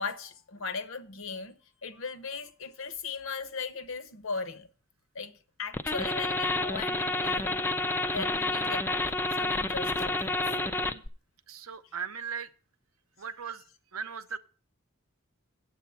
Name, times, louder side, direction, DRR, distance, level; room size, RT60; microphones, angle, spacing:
voice 1, 0.0-4.7 5.1-8.9 9.4-11.0, left 4 dB, 70° left, 0.9 m, -38 dB
sound 1, 5.7-11.1, left 2 dB, 10° left, 0.4 m, -29 dB
voice 2, 11.5-12.5 13.2-13.6 13.9-14.4, right 6 dB, 85° right, 0.7 m, -37 dB
7.9 x 7.8 x 5.6 m
head